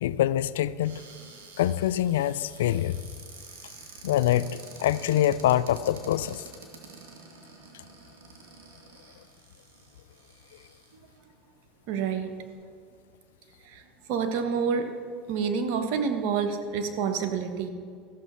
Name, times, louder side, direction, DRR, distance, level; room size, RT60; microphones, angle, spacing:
voice 1, 0.0-1.0 1.6-3.0 4.0-6.5, left 12 dB, 85° left, 17 dB, 0.3 m, -25 dB
Cupboard open or close, 0.8-11.2 11.8-11.9 12.2-12.5, right 4 dB, 85° right, 2.3 m, -49 dB
voice 2, 11.9-12.3 13.6-13.8 14.1-14.9 15.3-17.7, right 6 dB, 65° right, 6 dB, 1.2 m, -28 dB
14.0 x 7.0 x 5.6 m, 2.1 s
hypercardioid pair, 95°, 0 cm